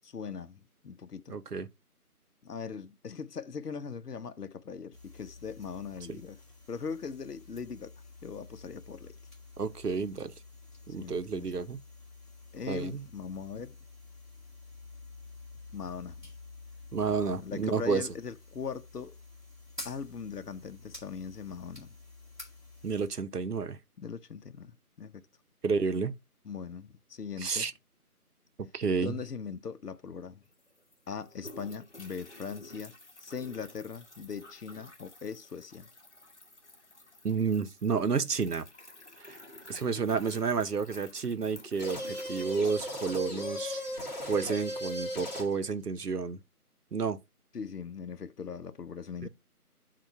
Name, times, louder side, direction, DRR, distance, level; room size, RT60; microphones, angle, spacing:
voice 1, 0.0-1.3 2.4-6.4 6.7-9.2 11.0-11.5 12.5-13.8 15.7-16.3 17.2-19.2 19.8-21.9 24.0-25.2 26.4-27.7 29.0-30.4 31.1-32.9 33.2-35.9 47.5-49.3, left 6 dB, 80° left, 0.8 m, -40 dB
voice 2, 1.3-1.7 6.1-6.2 9.6-10.3 10.9-11.8 12.7-13.0 16.9-18.0 22.8-23.8 25.6-26.1 27.4-27.7 28.7-29.2 37.2-38.7 39.2-39.4 39.7-43.8 44.3-46.4 46.9-47.2 49.2-49.3, right 5 dB, 85° right, 0.9 m, -30 dB
sound 1, 4.9-23.1, left 3 dB, ahead, 1.3 m, -50 dB
sound 2, 30.5-43.2, left 2 dB, 45° left, 1.4 m, -51 dB
sound 3, 41.8-45.7, left 1 dB, 25° left, 2.4 m, -37 dB
7.5 x 2.5 x 5.5 m
figure-of-eight pair, 175°, 46 cm